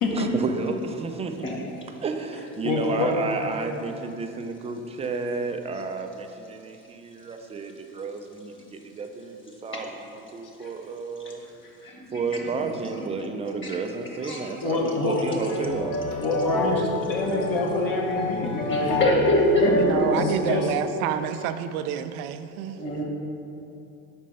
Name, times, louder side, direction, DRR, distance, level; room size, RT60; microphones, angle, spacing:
voice 1, 0.1-1.5 2.0-11.4 12.1-15.9, right 4 dB, 15° right, 5 dB, 0.4 m, -31 dB
voice 2, 2.6-3.1 10.6-10.7 11.6-12.0 14.6-15.2 16.2-19.2 20.1-20.7, left 3 dB, 50° left, -1 dB, 1.2 m, -27 dB
voice 3, 11.9-12.4 12.9-13.0 13.6-13.7 14.2-14.5 15.3-15.5 18.7-20.3 22.8-23.0, left 1 dB, 25° left, -1 dB, 1.4 m, -24 dB
sound 1, 15.4-20.4, left 2 dB, 75° left, 1.4 m, -29 dB
voice 4, 19.7-22.9, right 10 dB, 70° right, 10 dB, 0.5 m, -29 dB
5.3 x 4.3 x 5.3 m, 2.7 s
hypercardioid pair, 80°, 44 cm